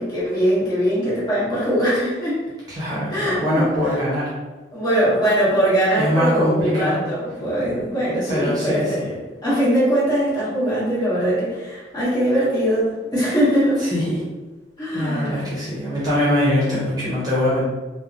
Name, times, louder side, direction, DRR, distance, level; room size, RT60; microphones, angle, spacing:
voice 1, 0.0-2.4 3.1-4.0 4.7-9.0 9.4-13.9 14.8-15.4, equal, 25° left, -10 dB, 1.3 m, -21 dB
voice 2, 2.7-4.3 6.0-7.0 8.3-9.1 13.8-14.2 14.9-17.6, left 1 dB, 20° right, -9 dB, 0.7 m, -22 dB
3.2 x 2.1 x 2.5 m, 1.2 s
head